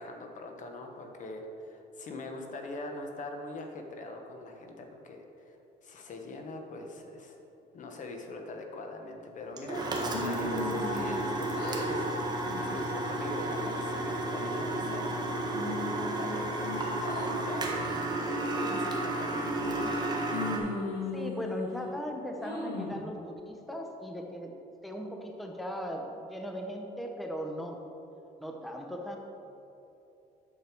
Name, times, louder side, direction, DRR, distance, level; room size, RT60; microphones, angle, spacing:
voice 1, 0.0-7.4 7.7-17.9 18.2-19.6, left 2 dB, 50° left, 4 dB, 1.1 m, -42 dB
sound 1, 9.6-20.6, right 2 dB, 25° right, 1.4 m, -32 dB
sound 2, 10.1-11.3 11.5-12.1 12.5-12.8 13.3-13.9 14.4-15.1 15.5-17.3 17.8-18.0 18.5-19.0 19.5-20.0 20.3-21.9 22.4-23.0, left 3 dB, 70° left, 2.0 m, -38 dB
voice 2, 21.1-24.6 24.8-27.8 28.4-29.2, equal, ahead, 2 dB, 0.8 m, -38 dB
8.5 x 6.7 x 4.6 m, 2.9 s
cardioid pair, 110°, 17 cm